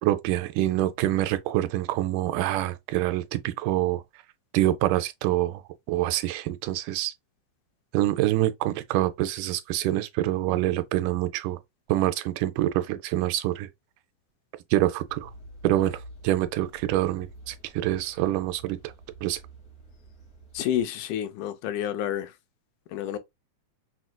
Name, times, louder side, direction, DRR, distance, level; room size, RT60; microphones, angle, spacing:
voice 1, 0.0-4.0 4.5-5.6 5.9-7.1 7.9-11.6 11.9-13.7 14.7-15.3 15.6-16.0 16.2-18.9 19.2-19.4, right 14 dB, 90° right, 2.1 m, -26 dB
sound 1, 15.1-20.8, right 1 dB, 45° left, 1.2 m, -48 dB
voice 2, 20.5-22.3 22.9-23.2, left 11 dB, 85° left, 2.1 m, -29 dB
6.0 x 2.4 x 2.2 m
omnidirectional pair, 3.6 m